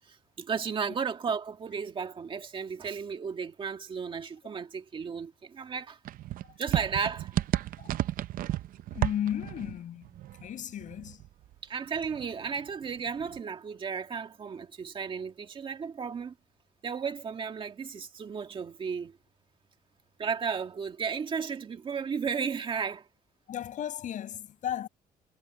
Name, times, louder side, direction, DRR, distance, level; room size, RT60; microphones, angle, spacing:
voice 1, 0.1-6.0 6.6-7.3 11.6-16.3 16.8-19.2 20.2-23.1, right 6 dB, 35° right, 1.9 m, -34 dB
sound 1, 6.1-11.6 11.9-13.4, right 13 dB, 70° right, 0.6 m, -34 dB
voice 2, 8.9-10.1 10.4-11.2 23.5-24.9, left 10 dB, 60° left, 5.5 m, -35 dB
cardioid pair, 160°, 15 cm